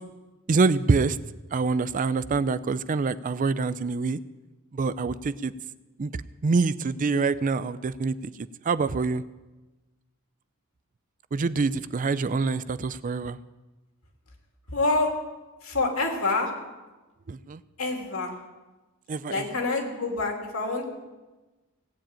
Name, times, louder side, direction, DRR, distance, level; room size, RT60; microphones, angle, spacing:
voice 1, 0.5-1.2 1.5-4.2 4.7-5.5 6.0-8.3 8.6-9.2 11.3-13.4 17.3-17.6 19.1-19.4, right 4 dB, 40° right, 15 dB, 0.4 m, -25 dB
voice 2, 14.7-15.1 15.6-16.5 17.8-18.3 19.3-20.8, left 3 dB, 70° left, 2 dB, 2.7 m, -26 dB
17.5 x 7.6 x 8.8 m, 1.2 s
head